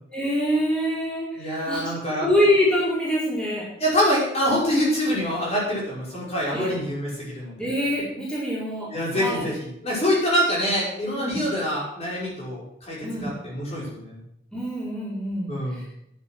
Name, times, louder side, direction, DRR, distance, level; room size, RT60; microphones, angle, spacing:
voice 1, 0.1-1.9 2.2-3.7 6.5-6.7 7.6-9.5 11.1-11.4 13.0-13.3 14.5-15.8, left 1 dB, 5° left, -7 dB, 4.5 m, -25 dB
voice 2, 1.4-2.3 3.8-7.6 8.9-14.2 15.5-15.8, equal, 35° left, -5 dB, 5.7 m, -25 dB
11.0 x 10.5 x 6.2 m, 0.78 s
head